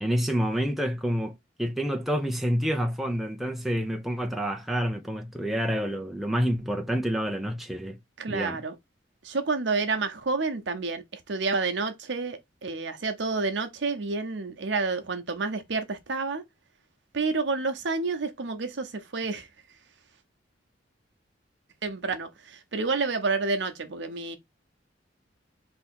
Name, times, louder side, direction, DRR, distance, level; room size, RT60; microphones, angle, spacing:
voice 1, 0.0-8.0 8.3-8.6, equal, ahead, 0.5 m, -28 dB
voice 2, 8.2-8.7 9.2-16.4 17.1-19.5 21.8-24.4, right 4 dB, 70° right, 0.8 m, -29 dB
3.4 x 2.8 x 4.3 m
head